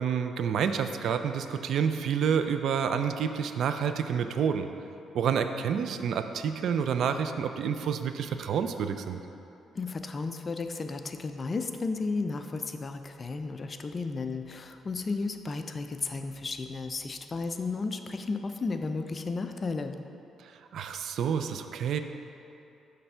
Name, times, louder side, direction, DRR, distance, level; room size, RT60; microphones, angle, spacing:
voice 1, 0.0-4.7 5.1-9.2 20.7-22.0, right 7 dB, 70° right, 8 dB, 0.3 m, -28 dB
voice 2, 9.7-19.9, left 3 dB, 35° left, 7 dB, 0.4 m, -33 dB
6.6 x 3.3 x 5.5 m, 2.7 s
cardioid pair, 90°, 0 cm